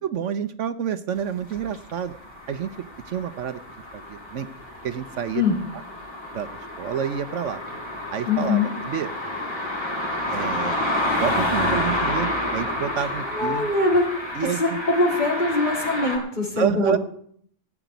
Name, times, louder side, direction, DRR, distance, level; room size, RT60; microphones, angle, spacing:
voice 1, 0.0-2.1 2.5-2.7 3.1-3.6 3.9-4.5 4.8-5.5 6.3-6.5 6.8-7.6 8.1-9.1 10.3-10.8 11.2-13.7 14.3-14.8 16.6-17.0, right 8 dB, 70° right, 12 dB, 1.0 m, -28 dB
sound 1, 1.5-16.2, left 1 dB, 20° left, 4.1 m, -29 dB
voice 2, 8.3-8.7 13.0-14.0 14.6-16.9, left 3 dB, 35° left, 0 dB, 3.1 m, -23 dB
17.0 x 6.0 x 9.2 m, 0.63 s
omnidirectional pair, 1.4 m